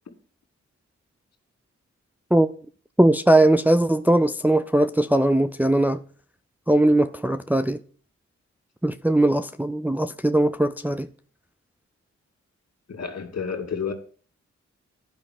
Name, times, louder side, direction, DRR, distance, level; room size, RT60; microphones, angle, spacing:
voice 1, 3.0-6.0 6.7-7.8 8.8-11.1, right 1 dB, 5° right, 0.5 m, -20 dB
voice 2, 12.9-13.9, left 6 dB, 55° left, 2.3 m, -30 dB
10.5 x 5.2 x 7.7 m
cardioid pair, 45°, 30 cm